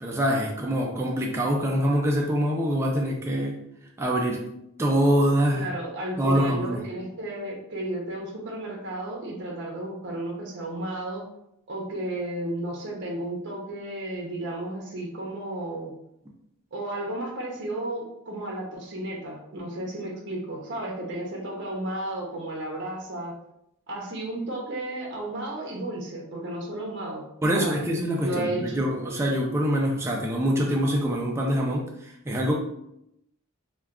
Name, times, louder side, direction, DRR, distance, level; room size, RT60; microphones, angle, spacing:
voice 1, 0.0-3.6 4.0-4.4 4.8-5.7 6.2-6.8 27.4-32.5, equal, 10° right, -1 dB, 0.3 m, -24 dB
voice 2, 5.5-11.2 11.7-15.9 16.7-23.3 23.9-27.3 27.5-27.8 28.2-28.8, right 1 dB, 55° right, -1 dB, 0.6 m, -33 dB
2.2 x 2.2 x 3.5 m, 0.81 s
head